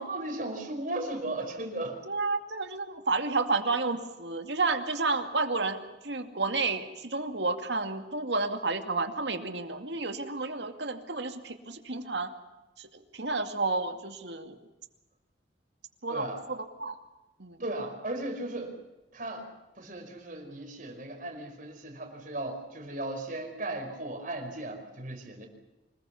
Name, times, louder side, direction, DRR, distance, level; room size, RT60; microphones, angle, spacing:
voice 1, 0.0-2.0 16.1-16.4 17.6-18.7 19.1-19.5 19.8-25.5, right 2 dB, 50° right, 5 dB, 5.2 m, -36 dB
voice 2, 2.1-12.3 12.8-14.6 16.0-16.9 17.4-17.6, right 3 dB, 70° right, 6 dB, 2.4 m, -31 dB
26.0 x 20.5 x 7.1 m, 1.0 s
head